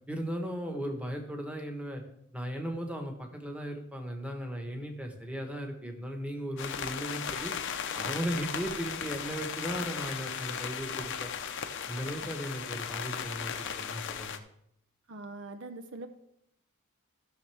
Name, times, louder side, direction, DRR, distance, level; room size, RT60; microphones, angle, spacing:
voice 1, 0.1-2.0 2.3-7.5 7.9-11.3 11.9-14.4, equal, 5° right, 3 dB, 1.2 m, -37 dB
sound 1, 6.6-14.4, left 7 dB, 60° left, 0.7 m, -36 dB
voice 2, 15.1-16.1, right 2 dB, 60° right, 8 dB, 0.6 m, -43 dB
15.0 x 6.5 x 3.4 m, 0.76 s
head